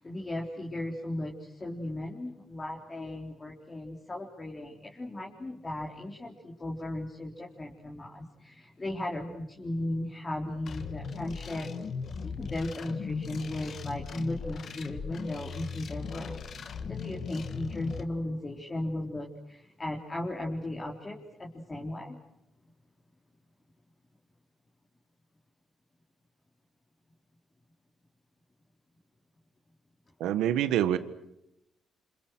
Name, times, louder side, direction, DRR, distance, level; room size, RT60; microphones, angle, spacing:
voice 1, 0.0-11.7 12.2-22.2, left 1 dB, 25° left, -1 dB, 3.9 m, -36 dB
sound 1, 10.7-18.0, left 5 dB, 55° left, 1.8 m, -38 dB
voice 2, 30.2-31.0, right 11 dB, 90° right, 12 dB, 1.5 m, -26 dB
29.5 x 27.0 x 6.2 m, 0.86 s
cardioid pair, 90°, 0 cm